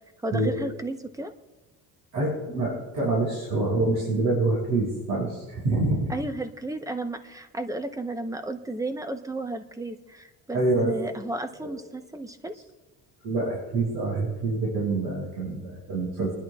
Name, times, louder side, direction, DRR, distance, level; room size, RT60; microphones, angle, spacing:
voice 1, 0.2-1.3 6.1-12.5, right 2 dB, 10° right, 8 dB, 0.8 m, -33 dB
voice 2, 2.1-6.1 10.5-11.0 11.6-11.7 13.2-16.3, right 2 dB, 65° right, -3 dB, 5.7 m, -26 dB
28.0 x 11.0 x 2.4 m, 1.2 s
cardioid pair, 115°, 36 cm